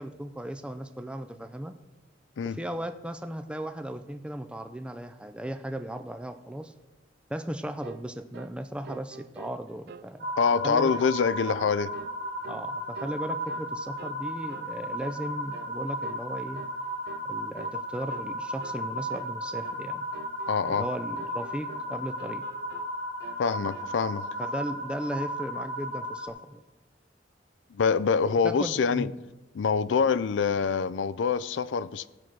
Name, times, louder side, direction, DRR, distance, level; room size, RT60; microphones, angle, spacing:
voice 1, 0.0-1.7 2.4-6.7 7.3-10.3 10.6-10.9 11.6-11.7 12.5-16.6 17.2-20.1 20.7-22.5 24.4-26.6 28.3-29.2, right 1 dB, 5° right, 0.5 m, -36 dB
sound 1, 7.8-8.1 8.3-8.6 8.8-10.1 10.4-10.6 10.9-11.1 11.4-11.7 11.9-12.7 12.9-13.7 14.0-14.2 14.5-14.7 15.0-15.2 15.5-15.7 16.0-16.3 16.5-16.8 17.1-17.3 17.6-17.8 18.1-18.3 18.6-18.9 19.1-19.3 19.6-19.8 20.1-20.9 21.2-21.9 22.2-22.9 23.2-23.9, right 5 dB, 60° right, 0.4 m, -46 dB
sound 2, 10.2-26.3, equal, 90° right, 2.4 m, -35 dB
voice 2, 10.4-11.9 20.5-20.9 23.4-24.3 27.7-29.1 29.5-32.1, left 5 dB, 80° left, 0.4 m, -25 dB
17.0 x 5.8 x 4.7 m
head